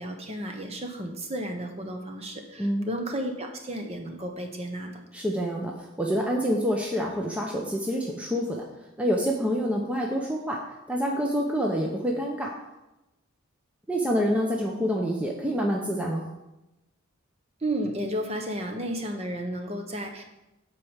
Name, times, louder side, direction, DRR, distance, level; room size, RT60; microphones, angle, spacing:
voice 1, 0.0-5.0 17.6-20.2, right 1 dB, 30° right, 4 dB, 1.0 m, -33 dB
voice 2, 5.1-8.6 9.0-10.6 10.9-12.5 13.9-16.2, equal, 5° right, -1 dB, 0.7 m, -27 dB
8.3 x 4.7 x 7.3 m, 0.97 s
head